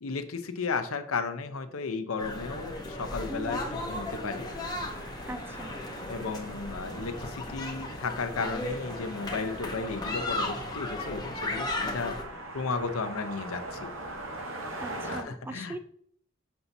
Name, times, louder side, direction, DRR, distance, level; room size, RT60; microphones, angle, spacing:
voice 1, 0.0-4.4 6.1-12.2 12.5-13.9 15.0-15.8, left 4 dB, 75° left, 9 dB, 0.7 m, -34 dB
sound 1, 2.2-12.2, left 2 dB, 20° left, 0.9 m, -36 dB
sound 2, 2.4-15.2, right 2 dB, 65° right, 0.9 m, -43 dB
voice 2, 3.3-3.7 5.3-5.7 14.8-15.8, right 1 dB, 10° right, 8 dB, 0.3 m, -40 dB
7.0 x 5.6 x 2.7 m, 0.64 s
head